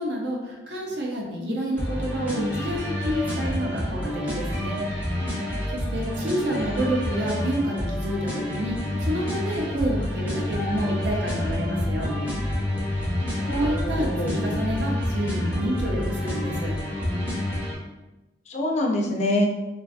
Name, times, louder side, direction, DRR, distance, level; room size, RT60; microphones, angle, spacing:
voice 1, 0.0-4.9 5.3-5.4 5.7-12.2 13.4-16.8, right 1 dB, 65° right, 0 dB, 0.5 m, -29 dB
sound 1, 1.8-17.8, left 1 dB, 10° right, 0.7 m, -28 dB
voice 2, 6.5-6.9 13.4-14.4 18.5-19.5, left 1 dB, 40° left, 1 dB, 0.4 m, -26 dB
2.5 x 2.3 x 2.4 m, 1.1 s
head